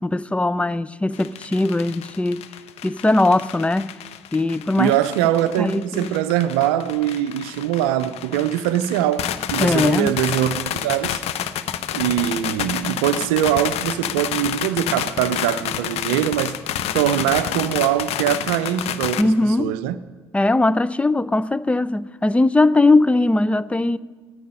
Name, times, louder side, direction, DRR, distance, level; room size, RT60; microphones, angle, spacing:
voice 1, 0.0-2.4 2.8-3.9 4.3-5.0 5.6-6.1 9.6-10.2 19.2-19.8 20.3-24.0, left 2 dB, 10° left, 0.4 m, -19 dB
sound 1, 1.1-19.2, left 10 dB, 50° left, 0.8 m, -29 dB
voice 2, 4.8-11.2 11.9-16.5 16.9-20.0, right 12 dB, 65° right, 0.5 m, -22 dB
15.5 x 13.0 x 5.4 m
figure-of-eight pair, 55°, 13 cm